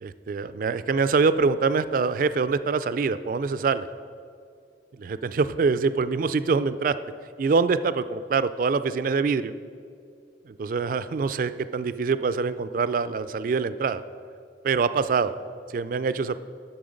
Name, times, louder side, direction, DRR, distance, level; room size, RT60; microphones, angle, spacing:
voice 1, 0.0-3.9 5.0-7.0 7.4-9.5 10.5-14.0 14.6-15.3 15.7-16.4, right 4 dB, 50° right, 13 dB, 0.3 m, -24 dB
8.7 x 6.2 x 5.1 m, 2.3 s
head